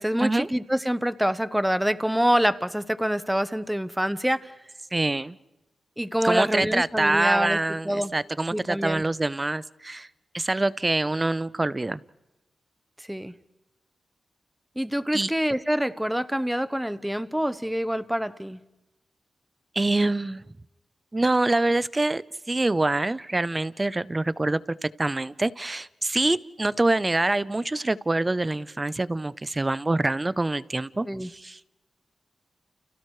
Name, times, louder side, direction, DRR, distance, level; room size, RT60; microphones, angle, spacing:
voice 1, 0.0-4.5 6.0-7.6 7.8-8.1 8.5-9.0 13.1-13.3 14.8-18.6 31.1-31.3, equal, 5° right, 13 dB, 1.0 m, -26 dB
voice 2, 4.9-5.4 6.2-10.1 10.3-12.0 15.1-15.3 19.7-20.4 21.1-31.8, right 2 dB, 25° right, 17 dB, 0.7 m, -25 dB
30.0 x 29.0 x 3.3 m, 0.97 s
cardioid pair, 60°, 0 cm